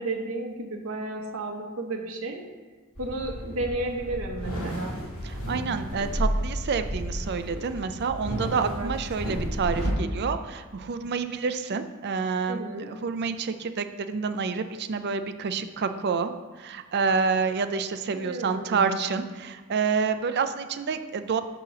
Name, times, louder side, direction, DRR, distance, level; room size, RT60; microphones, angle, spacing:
voice 1, 0.0-2.4 3.0-5.0 8.6-8.9 12.5-12.9 18.1-19.0, right 2 dB, 65° right, 2 dB, 0.9 m, -33 dB
sound 1, 3.0-9.9, equal, 65° left, 2.3 m, -32 dB
voice 2, 5.2-16.3 16.6-21.4, right 5 dB, 50° right, 10 dB, 0.4 m, -28 dB
8.5 x 3.0 x 6.0 m, 1.3 s
head